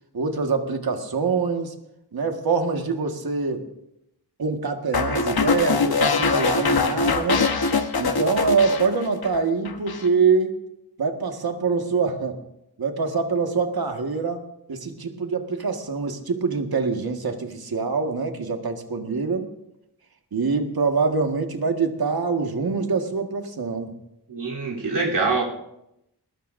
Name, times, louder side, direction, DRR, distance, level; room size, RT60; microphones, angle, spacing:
voice 1, 0.1-1.7 2.1-3.6 4.4-7.5 8.0-10.6 11.0-12.4 12.8-14.4 14.7-19.5 20.3-23.9, right 4 dB, 65° right, 4 dB, 1.8 m, -24 dB
sound 1, 4.9-9.4 9.7-10.1, left 4 dB, 65° left, 1.2 m, -23 dB
voice 2, 24.3-25.4, right 3 dB, 85° right, -4 dB, 3.6 m, -24 dB
20.5 x 20.0 x 2.7 m, 0.82 s
wide cardioid pair, 120°, 40 cm